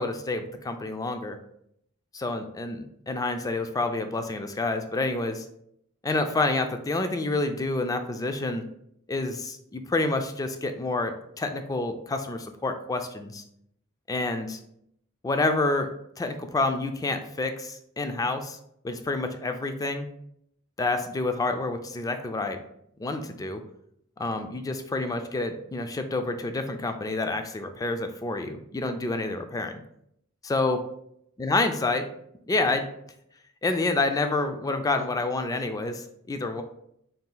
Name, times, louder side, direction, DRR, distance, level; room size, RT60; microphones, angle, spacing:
voice 1, 0.0-1.4 2.1-5.5 6.0-8.6 9.1-11.1 11.4-13.4 14.1-14.6 15.2-15.9 16.2-18.6 18.8-20.1 20.8-22.6 23.0-23.6 24.2-29.8 30.4-30.8 31.4-32.1 32.5-32.8 33.6-36.6, left 2 dB, 15° left, 7 dB, 0.3 m, -28 dB
4.0 x 2.4 x 3.8 m, 0.74 s
head